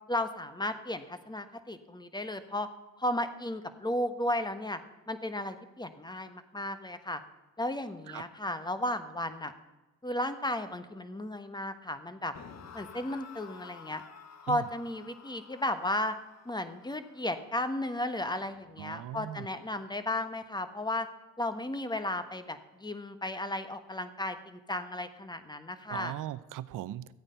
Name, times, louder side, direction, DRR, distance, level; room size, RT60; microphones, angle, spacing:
voice 1, 0.1-2.7 3.0-4.8 5.1-7.2 7.6-9.5 10.0-12.3 12.7-14.0 14.4-16.1 16.4-21.1 21.4-26.1, left 1 dB, 10° left, 10 dB, 1.3 m, -34 dB
sound 1, 12.3-19.5, left 6 dB, 45° left, 1.3 m, -52 dB
voice 2, 18.8-19.5 25.9-27.1, right 13 dB, 55° right, 17 dB, 0.7 m, -39 dB
14.0 x 8.8 x 5.6 m, 1.1 s
supercardioid pair, 70°, 37 cm